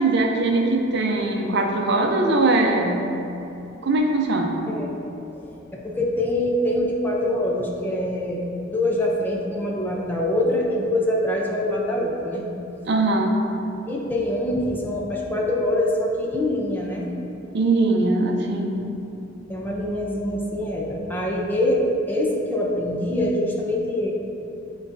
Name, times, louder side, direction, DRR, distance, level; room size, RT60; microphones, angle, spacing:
voice 1, 0.0-3.1 3.8-4.6 12.9-13.4 17.5-18.8, right 2 dB, 60° right, 2 dB, 0.6 m, -21 dB
voice 2, 5.7-12.4 13.9-17.1 19.5-24.1, left 1 dB, 10° left, -2 dB, 0.6 m, -24 dB
9.4 x 4.0 x 2.7 m, 2.8 s
head